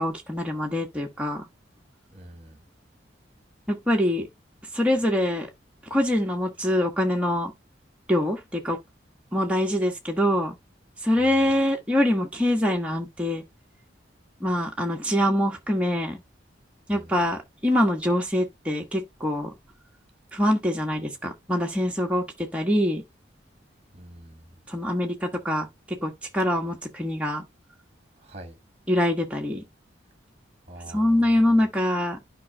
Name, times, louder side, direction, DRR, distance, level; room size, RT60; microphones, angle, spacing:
voice 1, 0.0-1.4 3.7-4.3 4.7-5.5 5.9-7.5 8.1-8.8 9.3-10.5 11.0-13.4 14.4-16.2 16.9-19.5 20.3-23.0 24.7-27.4 28.9-29.6 30.9-32.2, left 1 dB, 5° right, 1.2 m, -24 dB
voice 2, 2.1-2.6 11.2-11.4 16.9-17.2 23.9-24.5 28.2-28.6 30.7-31.4, right 1 dB, 30° right, 1.5 m, -45 dB
12.0 x 5.3 x 2.2 m
head